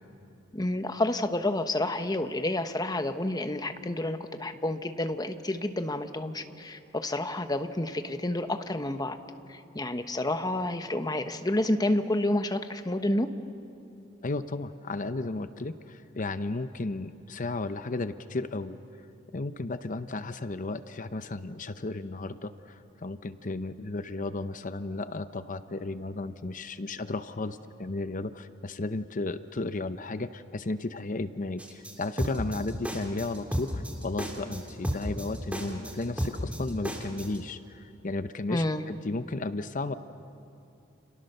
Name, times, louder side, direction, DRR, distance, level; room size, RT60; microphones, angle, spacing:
voice 1, 0.5-9.2 9.5-13.3 38.5-38.9, left 1 dB, 20° left, 8 dB, 1.1 m, -29 dB
voice 2, 14.2-18.8 19.3-39.9, left 2 dB, 40° left, 11 dB, 0.7 m, -34 dB
sound 1, 31.6-37.4, equal, 5° right, 2.9 m, -33 dB
30.0 x 29.0 x 6.7 m, 2.8 s
head